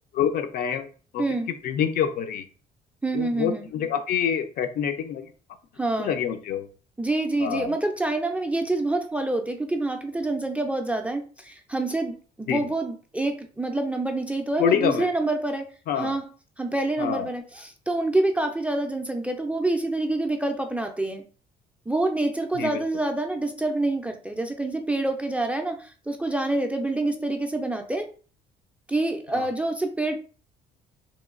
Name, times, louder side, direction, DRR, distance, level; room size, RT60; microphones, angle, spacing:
voice 1, 0.1-0.9 1.1-1.2 1.6-2.5 3.1-5.3 6.0-6.7 7.4-7.7 12.5-12.6 14.6-15.1 15.9-16.2 17.0-17.3 22.5-22.8 29.3-29.5, left 8 dB, 60° left, 7 dB, 0.5 m, -26 dB
voice 2, 3.0-3.7 5.8-6.2 7.0-15.7 16.0-16.3 16.6-21.2 21.9-28.1 28.9-30.2, right 2 dB, 10° right, 4 dB, 0.3 m, -27 dB
2.9 x 2.2 x 2.4 m, 0.38 s
cardioid pair, 110°, 17 cm